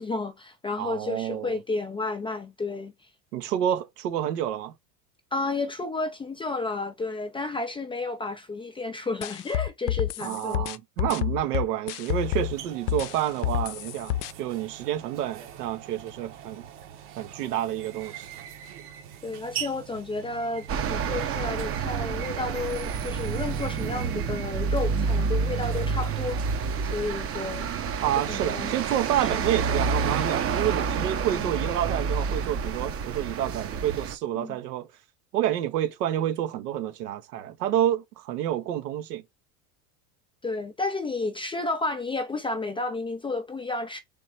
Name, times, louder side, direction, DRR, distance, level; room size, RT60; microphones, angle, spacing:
voice 1, 0.0-3.1 5.3-10.6 19.2-26.4 26.9-27.6 28.3-28.8 29.2-29.4 31.3-31.5 34.4-34.6 40.4-44.0, left 3 dB, 15° left, 0.3 m, -32 dB
voice 2, 0.8-1.6 3.3-4.7 10.2-16.7 17.2-18.3 28.0-34.9 35.3-39.2, right 11 dB, 85° right, 0.9 m, -29 dB
sound 1, 9.2-12.5 12.9-14.3, left 13 dB, 80° left, 0.5 m, -28 dB
sound 2, 12.0-27.0, right 9 dB, 60° right, 1.1 m, -43 dB
sound 3, 20.7-34.1, right 5 dB, 30° right, 0.6 m, -28 dB
3.5 x 3.1 x 4.2 m
hypercardioid pair, 95°, 46 cm